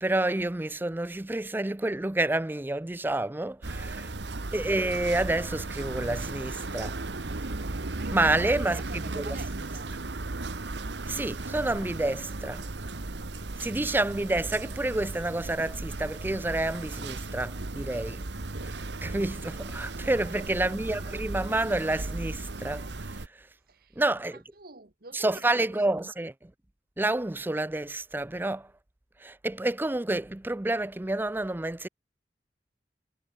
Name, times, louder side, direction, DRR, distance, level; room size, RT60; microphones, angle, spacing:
voice 1, 0.0-4.1 4.5-7.0 7.4-7.5 8.1-9.4 11.1-12.6 13.6-18.3 18.6-23.5 24.0-24.4 25.1-26.5 27.0-28.7 29.2-31.9, right 2 dB, 10° right, 0.5 m, -29 dB
sound 1, 3.6-23.3, right 2 dB, 85° right, 1.3 m, -36 dB
voice 2, 3.7-4.2 8.0-9.9 20.0-20.5 23.7-24.0 24.6-25.4 25.7-25.8, right 3 dB, 60° right, 2.3 m, -46 dB
head